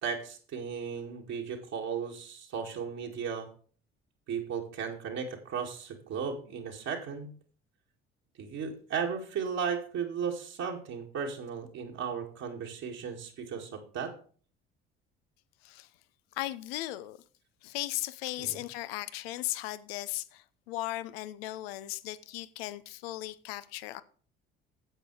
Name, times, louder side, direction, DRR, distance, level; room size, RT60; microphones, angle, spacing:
voice 1, 0.0-3.5 4.3-7.3 8.4-14.1 18.4-18.6, right 6 dB, 60° right, 2.2 m, -35 dB
voice 2, 16.3-17.2 17.6-24.0, left 16 dB, 75° left, 0.7 m, -37 dB
9.0 x 7.7 x 4.8 m
hypercardioid pair, 55°, 30 cm